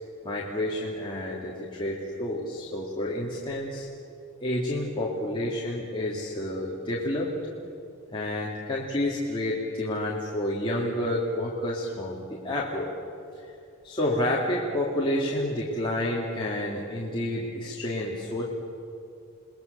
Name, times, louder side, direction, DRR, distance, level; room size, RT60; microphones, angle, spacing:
voice 1, 0.2-3.9 4.4-7.3 8.1-12.9 13.3-13.5 13.8-18.4, left 1 dB, 25° left, -5 dB, 2.7 m, -29 dB
29.5 x 20.5 x 6.9 m, 2.7 s
head